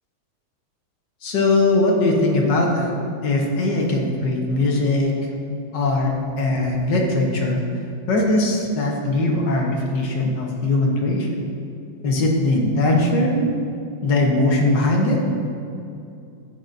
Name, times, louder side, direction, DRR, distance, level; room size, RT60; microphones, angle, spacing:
voice 1, 1.2-2.9 3.2-5.1 5.7-7.6 8.1-11.5 12.0-13.5 14.0-15.2, left 2 dB, 60° left, -1 dB, 1.8 m, -20 dB
13.0 x 8.6 x 2.7 m, 2.6 s
omnidirectional pair, 2.2 m